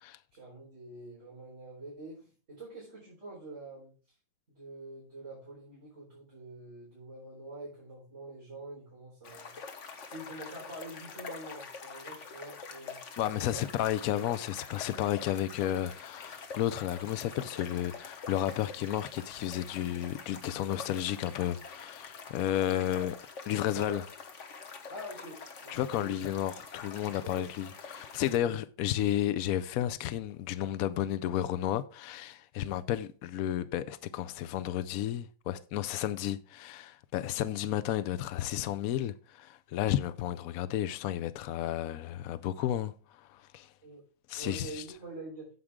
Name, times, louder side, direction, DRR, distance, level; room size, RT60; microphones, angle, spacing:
voice 1, 0.3-3.9 4.5-9.5 10.1-13.0 13.3-13.6 22.9-23.1 23.5-24.0 24.9-26.2 27.2-27.5 28.3-28.5 43.8-44.0 44.3-45.5, right 2 dB, 35° right, 4.8 m, -46 dB
sound 1, 9.2-28.4, left 5 dB, 45° left, 1.4 m, -46 dB
voice 2, 13.2-23.2 23.5-24.0 25.7-43.7 44.3-44.8, left 12 dB, 80° left, 0.7 m, -32 dB
9.6 x 7.7 x 3.6 m
omnidirectional pair, 2.0 m